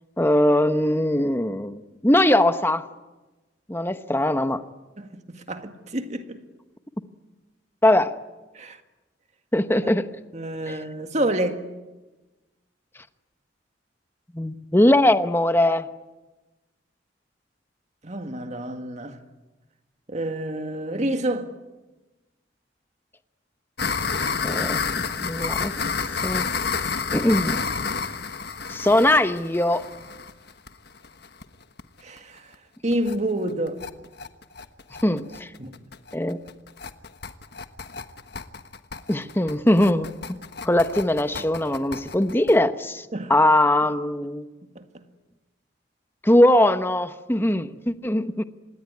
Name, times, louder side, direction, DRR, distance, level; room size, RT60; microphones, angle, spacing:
voice 1, 0.2-2.9 3.7-4.6 7.8-8.1 9.5-10.1 10.7-10.8 14.3-15.9 24.4-24.8 25.2-25.8 26.2-26.5 27.1-27.7 28.7-29.9 35.0-35.5 36.1-36.4 39.1-40.1 40.6-44.5 46.2-48.4, left 1 dB, 10° left, 1.0 m, -21 dB
voice 2, 5.0-6.4 8.5-8.8 10.3-11.6 18.0-19.2 20.1-21.5 32.0-32.4 32.8-33.8 35.6-35.8 43.1-43.3 44.8-44.9, right 1 dB, 40° right, 1.9 m, -28 dB
sound 1, 23.8-31.4 31.8-31.9 32.2-32.3 32.5-32.6 32.9-33.2 33.5-42.6, left 5 dB, 60° left, 1.4 m, -30 dB
26.5 x 20.5 x 9.8 m
head